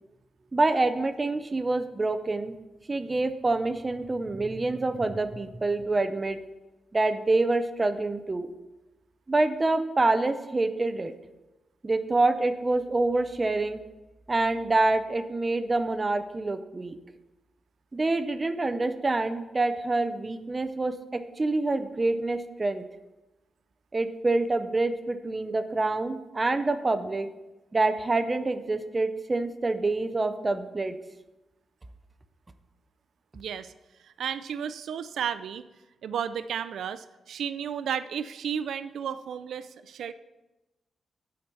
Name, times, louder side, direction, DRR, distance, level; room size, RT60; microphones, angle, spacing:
voice 1, 0.5-2.6 2.9-6.4 6.9-8.5 9.3-11.1 11.8-13.8 14.3-17.0 17.9-22.8 23.9-27.3 27.7-30.9, right 2 dB, 20° right, 9 dB, 0.5 m, -26 dB
voice 2, 33.3-33.7 34.0-35.7 36.0-40.1, right 8 dB, 80° right, 13 dB, 0.3 m, -33 dB
8.6 x 4.5 x 6.6 m, 1.0 s
wide cardioid pair, 150°, 0 cm